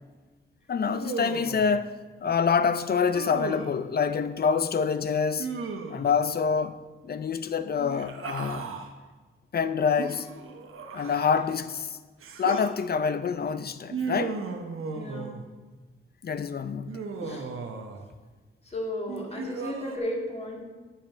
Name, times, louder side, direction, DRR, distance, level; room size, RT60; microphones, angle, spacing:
voice 1, 0.7-5.5 5.9-8.7 9.5-10.3 10.9-12.0 12.4-14.4 16.2-17.4, left 6 dB, 50° left, 0.5 m, -27 dB
Human voice, 0.9-1.7 3.1-3.8 5.4-6.2 7.7-8.9 10.0-11.5 12.2-12.7 13.9-15.5 16.9-18.1 19.1-20.0, right 4 dB, 85° right, 1.0 m, -36 dB
voice 2, 14.9-15.3 17.2-17.5 18.6-20.6, left 1 dB, 30° left, 2.2 m, -34 dB
11.5 x 7.5 x 4.5 m
wide cardioid pair, 105°, 21 cm